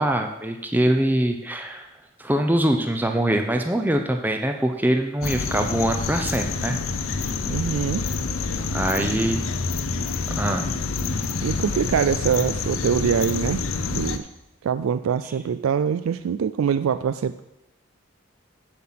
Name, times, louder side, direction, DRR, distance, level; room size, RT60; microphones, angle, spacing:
voice 1, 0.0-1.9 2.2-6.8 8.7-9.4 10.4-10.7, right 1 dB, 10° right, 4 dB, 0.6 m, -23 dB
sound 1, 5.2-14.2, left 4 dB, 80° left, 0.7 m, -27 dB
voice 2, 7.5-8.1 9.0-9.2 11.4-13.6 13.9-14.3 14.6-17.4, right 7 dB, 85° right, 12 dB, 0.3 m, -24 dB
7.7 x 7.6 x 5.8 m, 0.89 s
head